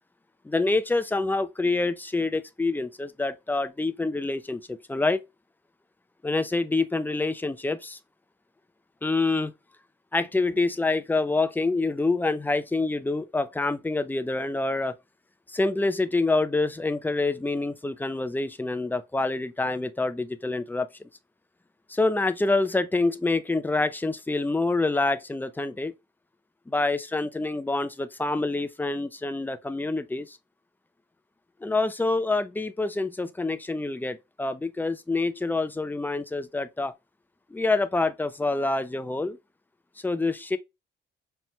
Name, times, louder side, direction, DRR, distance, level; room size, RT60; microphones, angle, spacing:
voice 1, 0.4-5.2 6.2-8.0 9.0-9.5 10.1-14.9 15.5-20.9 21.9-25.9 26.7-30.4 31.6-36.9 37.5-39.4 40.0-40.6, left 3 dB, 10° left, 0.4 m, -26 dB
5.6 x 2.1 x 3.0 m
cardioid pair, 90°, 20 cm